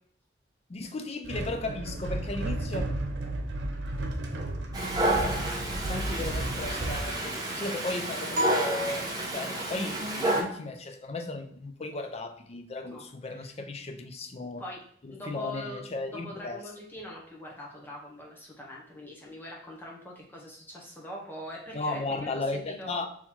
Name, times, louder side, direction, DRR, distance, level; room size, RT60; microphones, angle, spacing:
voice 1, 0.7-2.8 5.9-14.6 15.0-16.6 21.7-23.1, left 2 dB, 35° left, 6 dB, 0.5 m, -35 dB
sound 1, 1.2-7.1, right 1 dB, 90° right, 0.9 m, -33 dB
Dog, 4.7-10.4, right 1 dB, 20° right, 0.9 m, -30 dB
srhoenhut mfp E, 8.3-9.8, equal, 50° right, 0.8 m, -33 dB
voice 2, 15.1-23.0, left 1 dB, 10° left, -3 dB, 0.9 m, -43 dB
3.8 x 3.0 x 4.3 m, 0.62 s
head